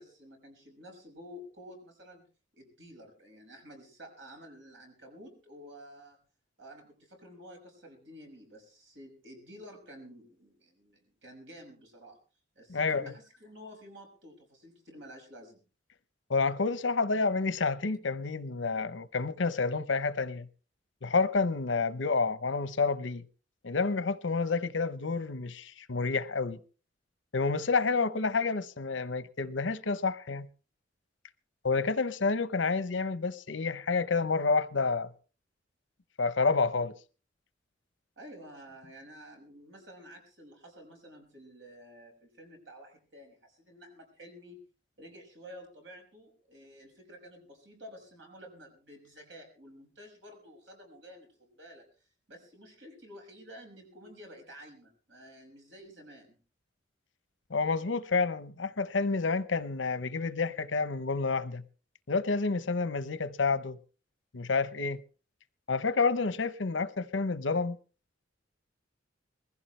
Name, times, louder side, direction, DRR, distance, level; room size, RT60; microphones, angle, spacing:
voice 1, 0.0-2.2 2.5-6.2 6.6-12.2 12.5-15.6 38.2-44.6 45.0-51.8 52.3-56.4, equal, 75° right, 6.0 m, -51 dB
voice 2, 12.7-13.0 16.3-20.5 21.0-23.2 23.6-26.6 27.3-30.5 31.6-35.1 36.2-36.9 57.5-61.6 62.1-63.8 64.3-65.0 65.7-67.8, left 4 dB, 75° left, 0.8 m, -29 dB
21.5 x 15.5 x 3.3 m
head